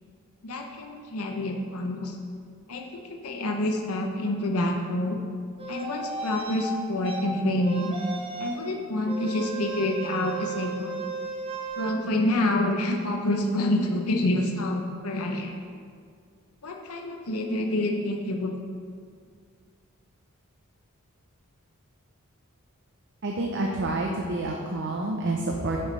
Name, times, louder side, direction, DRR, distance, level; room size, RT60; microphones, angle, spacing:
voice 1, 0.4-2.2 2.7-5.2 5.7-7.9 8.4-10.9 11.8-15.5 16.6-18.5, left 1 dB, 85° left, 2 dB, 0.8 m, -27 dB
sound 1, 5.6-6.6 7.0-7.2 7.6-8.7 9.1-11.9, right 4 dB, 25° right, 0.9 m, -34 dB
voice 2, 23.2-25.8, right 2 dB, 55° right, 0 dB, 0.7 m, -28 dB
10.0 x 7.8 x 3.3 m, 2.1 s
head